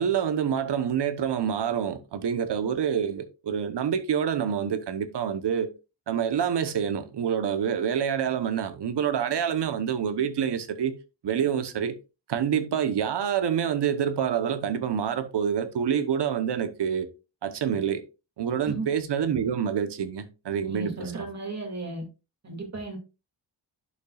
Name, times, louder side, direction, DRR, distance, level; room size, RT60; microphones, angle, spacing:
voice 1, 0.0-5.7 6.1-11.0 11.2-12.0 12.3-17.1 17.4-18.0 18.4-21.1, right 8 dB, 70° right, 1.0 m, -27 dB
voice 2, 20.7-22.0 22.4-23.0, right 3 dB, 40° right, 2.5 m, -35 dB
11.0 x 5.6 x 2.4 m
wide cardioid pair, 155°, 43 cm